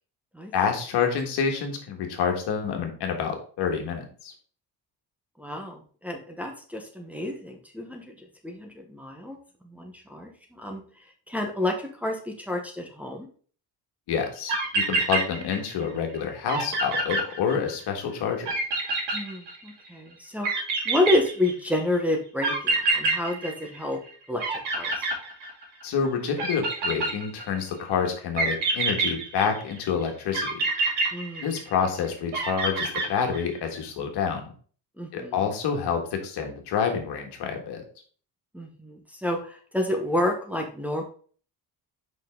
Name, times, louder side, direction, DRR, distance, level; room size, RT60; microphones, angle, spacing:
voice 1, 0.5-4.3 14.1-18.5 25.8-30.5 31.4-34.4 35.1-37.8, left 6 dB, 70° left, 3 dB, 1.7 m, -28 dB
voice 2, 5.4-9.4 9.6-10.8 11.3-11.7 12.0-13.3 19.1-24.0 24.3-24.4 24.8-25.1 31.1-31.5 35.0-35.4 38.5-41.0, left 1 dB, 5° right, 1 dB, 0.9 m, -29 dB
sound 1, 14.2-14.3 14.5-15.9 16.1-16.2 16.5-17.9 18.5-19.9 20.4-21.8 22.4-24.1 24.4-25.8 26.4-27.6 28.4-29.8 30.3-31.9 32.3-33.6, right 3 dB, 80° right, 2.9 m, -27 dB
5.5 x 5.4 x 3.6 m, 0.43 s
cardioid pair, 150°, 41 cm